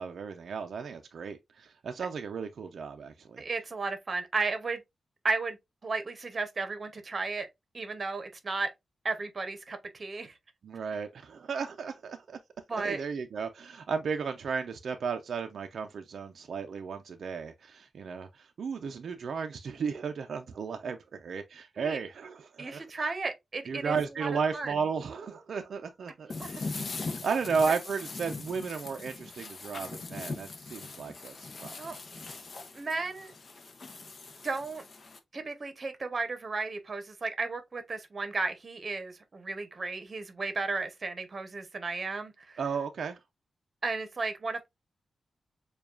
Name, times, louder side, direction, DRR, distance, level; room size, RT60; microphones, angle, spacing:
voice 1, 0.0-3.4 10.6-12.4 12.8-22.9 23.7-26.7 27.1-31.8 42.6-43.2, right 5 dB, 75° right, 0.4 m, -34 dB
voice 2, 3.4-4.8 5.2-5.6 5.8-7.5 7.7-8.7 9.0-10.4 12.7-13.0 21.8-22.0 22.6-24.7 26.3-26.5 31.8-32.0 32.7-33.3 34.4-34.8 35.3-42.6 43.8-44.7, right 3 dB, 35° right, 0.8 m, -34 dB
sound 1, 26.3-35.2, left 3 dB, 45° left, 0.6 m, -41 dB
6.8 x 2.3 x 2.3 m
wide cardioid pair, 150°, 0 cm